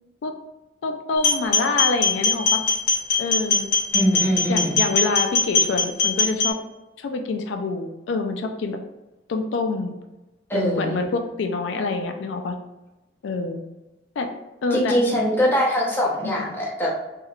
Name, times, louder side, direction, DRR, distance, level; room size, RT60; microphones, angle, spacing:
voice 1, 0.8-2.6 3.2-3.7 4.5-6.6 7.0-8.8 9.3-9.9 10.5-12.6 13.2-13.6 14.2-14.3 14.6-15.0 16.2-16.5, left 3 dB, 80° left, 6 dB, 0.3 m, -26 dB
sound 1, 1.2-6.5, left 4 dB, 55° left, 0.9 m, -21 dB
voice 2, 3.9-4.8 10.5-10.9 14.7-16.9, equal, 10° left, -4 dB, 0.8 m, -22 dB
3.3 x 3.0 x 2.3 m, 1.0 s
head